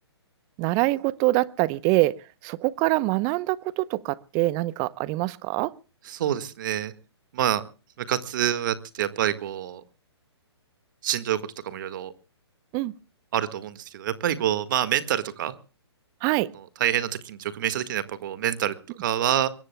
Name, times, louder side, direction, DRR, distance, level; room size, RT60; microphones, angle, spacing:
voice 1, 0.6-2.1 2.4-5.7 12.7-12.9 16.2-16.5, right 19 dB, 25° right, 0.7 m, -24 dB
voice 2, 6.0-6.9 7.3-7.6 8.0-9.8 11.0-12.1 13.3-15.5 16.5-19.5, right 11 dB, 45° right, 1.7 m, -27 dB
24.5 x 21.5 x 2.2 m
figure-of-eight pair, 130°, 14 cm